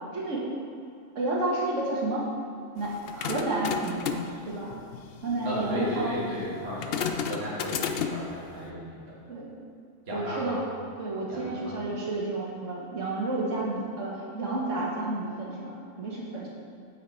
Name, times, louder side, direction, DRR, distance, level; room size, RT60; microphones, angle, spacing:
voice 1, 0.1-0.5 1.2-2.3 2.7-4.7 5.2-6.2 9.3-9.5 10.1-10.6 11.0-16.5, right 2 dB, 85° right, -4 dB, 1.9 m, -31 dB
sound 1, 2.8-8.3, left 7 dB, 60° left, 0.7 m, -34 dB
voice 2, 5.4-9.1 10.1-10.6 11.3-11.8, left 1 dB, 55° right, -7 dB, 1.9 m, -35 dB
8.4 x 6.3 x 4.3 m, 2.5 s
omnidirectional pair, 1.3 m